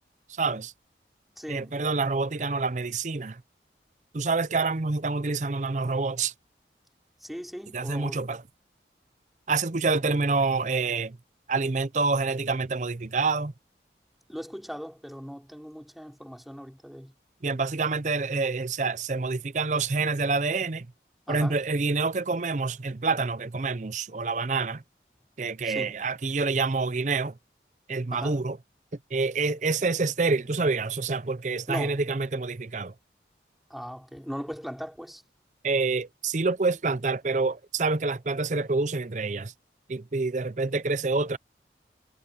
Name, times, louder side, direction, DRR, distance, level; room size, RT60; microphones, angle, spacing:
voice 1, 0.3-0.7 1.5-3.4 4.1-6.3 7.7-8.4 9.5-11.2 11.5-13.5 17.4-20.9 21.3-24.8 25.4-27.4 27.9-28.6 29.1-32.9 35.6-39.5 39.9-41.4, right 3 dB, 45° right, 0.6 m, -27 dB
voice 2, 1.4-1.8 7.2-8.2 14.3-17.1 21.3-21.6 25.6-25.9 28.1-28.4 31.7-32.0 33.7-35.2, equal, ahead, 3.3 m, -38 dB
head